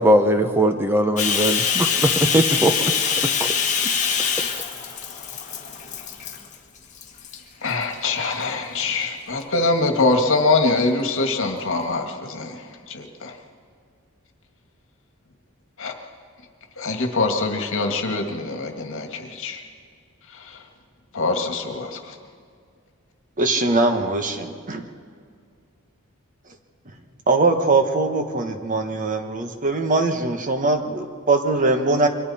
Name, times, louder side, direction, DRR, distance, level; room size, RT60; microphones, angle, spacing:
voice 1, 0.0-3.1, equal, 10° right, 6 dB, 0.7 m, -20 dB
Bathtub (filling or washing), 1.2-6.6 7.0-7.4 7.9-8.7, left 6 dB, 35° left, 1.8 m, -24 dB
voice 2, 7.6-12.6 12.9-13.3 15.8-15.9 16.8-19.6 21.1-22.1, left 3 dB, 65° left, 4 dB, 1.9 m, -23 dB
voice 3, 23.4-24.8 27.3-32.1, right 3 dB, 40° right, 6 dB, 1.3 m, -21 dB
28.5 x 23.5 x 4.3 m, 2.1 s
head